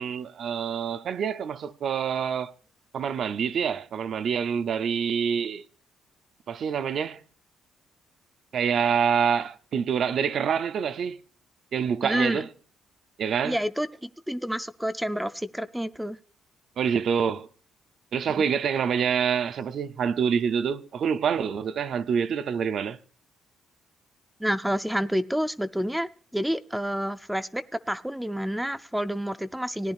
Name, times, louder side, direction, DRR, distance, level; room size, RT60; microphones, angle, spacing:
voice 1, 0.0-2.5 2.9-5.6 6.5-7.2 8.5-11.2 11.7-12.5 13.2-13.6 16.8-17.5 18.1-23.0, right 7 dB, 60° right, 0.5 m, -26 dB
voice 2, 12.0-12.5 13.4-16.2 18.4-18.5 24.4-29.9, equal, 5° right, 0.4 m, -29 dB
17.5 x 10.0 x 2.4 m
cardioid pair, 90°, 0 cm